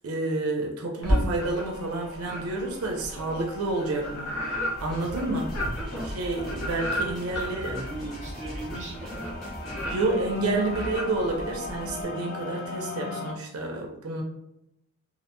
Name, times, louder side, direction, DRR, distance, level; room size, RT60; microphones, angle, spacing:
voice 1, 0.0-4.4 4.8-5.6 6.0-7.8 9.9-14.2, right 2 dB, 90° right, 1 dB, 0.5 m, -29 dB
sound 1, 1.0-1.8 2.2-12.0, equal, 75° left, 0.9 m, -32 dB
sound 2, 1.4-13.3, left 2 dB, 45° left, 0.4 m, -41 dB
sound 3, 4.8-9.9, equal, ahead, 0.8 m, -40 dB
voice 2, 5.5-6.1 7.3-9.1 9.8-10.2, right 2 dB, 35° right, -3 dB, 0.8 m, -40 dB
2.5 x 2.1 x 2.9 m, 0.85 s
head